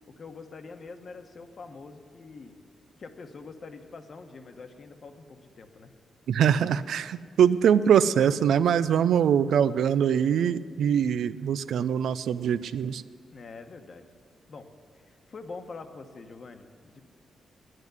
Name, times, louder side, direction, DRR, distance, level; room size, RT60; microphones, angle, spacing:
voice 1, 0.1-2.6 3.0-5.9 13.3-14.1 14.5-17.0, left 4 dB, 50° left, 7 dB, 1.1 m, -45 dB
voice 2, 6.3-13.0, right 8 dB, 85° right, 15 dB, 0.4 m, -23 dB
9.8 x 9.3 x 9.5 m, 2.1 s
cardioid pair, 110°, 0 cm